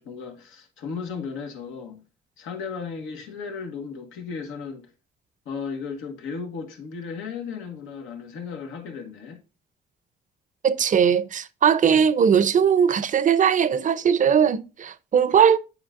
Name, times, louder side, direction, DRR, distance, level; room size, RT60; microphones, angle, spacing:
voice 1, 0.0-2.0 2.4-4.9 5.4-9.4, left 5 dB, 85° left, 1.3 m, -35 dB
voice 2, 10.6-15.6, right 7 dB, 40° right, 0.5 m, -19 dB
8.6 x 4.8 x 2.4 m
cardioid pair, 90°, 20 cm